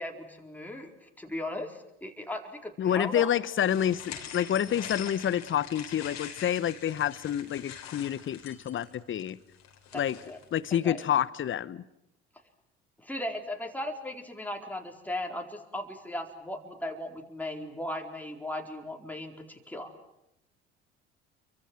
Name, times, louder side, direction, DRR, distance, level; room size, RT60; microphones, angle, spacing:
voice 1, 0.0-3.4 9.9-10.4 10.8-11.1 13.0-19.9, left 1 dB, 5° left, 4.4 m, -37 dB
voice 2, 2.8-9.4 9.9-10.2 10.5-11.8, left 10 dB, 35° left, 1.1 m, -28 dB
sound 1, 3.6-10.5, left 8 dB, 55° left, 4.1 m, -44 dB
29.0 x 24.5 x 7.6 m
hypercardioid pair, 60°, 33 cm